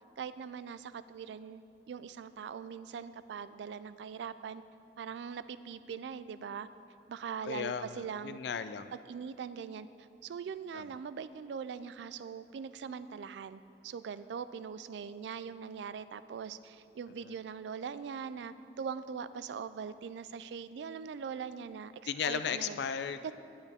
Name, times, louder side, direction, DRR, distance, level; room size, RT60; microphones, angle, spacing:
voice 1, 0.2-4.6 5.0-6.7 7.1-8.4 8.9-22.8 23.2-23.3, right 6 dB, 85° right, 14 dB, 0.3 m, -42 dB
voice 2, 7.5-8.9 10.7-10.8 17.2-17.3 22.1-23.2, left 7 dB, 75° left, 11 dB, 0.4 m, -35 dB
10.0 x 8.8 x 3.5 m, 2.5 s
head